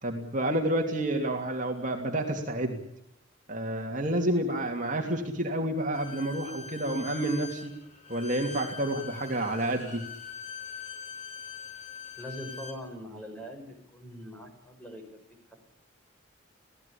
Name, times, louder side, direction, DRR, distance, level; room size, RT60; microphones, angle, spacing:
voice 1, 0.0-2.8 3.5-7.7 8.1-10.0, right 1 dB, 40° right, 2 dB, 3.0 m, -29 dB
Bowed string instrument, 5.9-12.8, left 6 dB, 35° left, 4.2 m, -43 dB
voice 2, 12.2-15.0, equal, 5° left, 3 dB, 6.1 m, -42 dB
25.5 x 17.5 x 8.7 m, 0.76 s
head